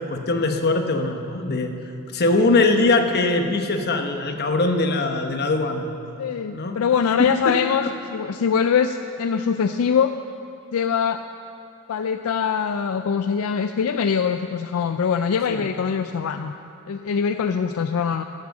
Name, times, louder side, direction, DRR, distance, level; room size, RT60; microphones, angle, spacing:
voice 1, 0.0-1.7 2.1-5.9 6.5-6.8 7.2-7.5 15.5-15.7, left 2 dB, 45° left, 5 dB, 1.0 m, -21 dB
voice 2, 6.2-10.1 10.7-11.2 11.9-16.5 16.9-18.2, left 6 dB, 75° left, 8 dB, 0.4 m, -23 dB
12.5 x 7.6 x 7.2 m, 2.7 s
head